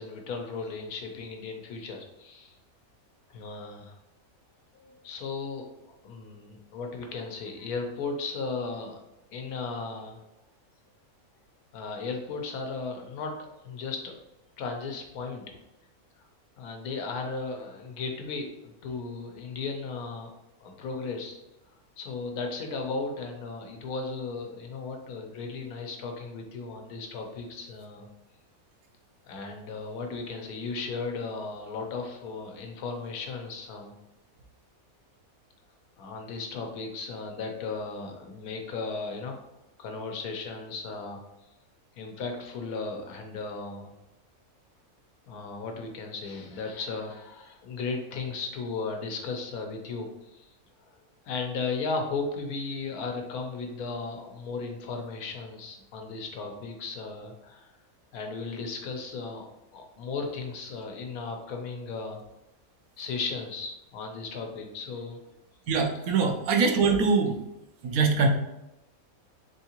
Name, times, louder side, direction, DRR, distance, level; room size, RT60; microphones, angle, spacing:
voice 1, 0.0-2.5 3.3-4.0 4.8-5.6 6.0-9.0 9.3-10.2 11.7-14.2 14.6-15.5 16.6-20.3 20.6-21.4 22.0-28.1 29.2-33.9 36.0-39.4 39.8-41.2 42.0-43.9 45.3-50.5 51.2-57.7 58.1-59.5 59.7-62.2 63.0-65.2, left 4 dB, 85° left, 3 dB, 1.2 m, -35 dB
voice 2, 65.7-67.4 67.8-68.3, right 4 dB, 80° right, 4 dB, 1.1 m, -23 dB
3.6 x 3.5 x 2.8 m, 0.93 s
omnidirectional pair, 1.5 m